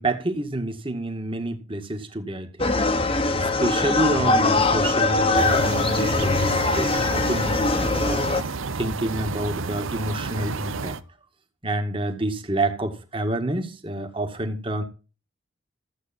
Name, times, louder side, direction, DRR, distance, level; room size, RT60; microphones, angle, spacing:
voice 1, 0.0-2.7 3.6-11.0 11.6-14.8, right 1 dB, 25° right, 2.0 m, -28 dB
sound 1, 2.6-8.4, left 2 dB, 30° left, 1.4 m, -22 dB
sound 2, 5.4-11.0, right 4 dB, 85° right, 1.0 m, -31 dB
15.0 x 8.4 x 4.3 m
head